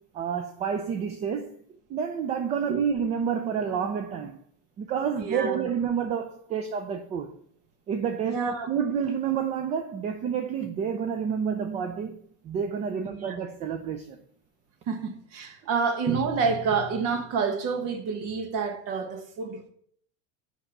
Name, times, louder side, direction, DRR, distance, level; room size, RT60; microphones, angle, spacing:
voice 1, 0.1-1.5 1.9-4.4 4.8-7.4 7.9-14.2, right 7 dB, 20° right, 0.3 m, -29 dB
voice 2, 5.2-5.7 8.3-8.7 13.1-13.4 14.9-19.7, right 5 dB, 45° right, 1.4 m, -28 dB
7.5 x 5.3 x 5.9 m
supercardioid pair, 150°, 34 cm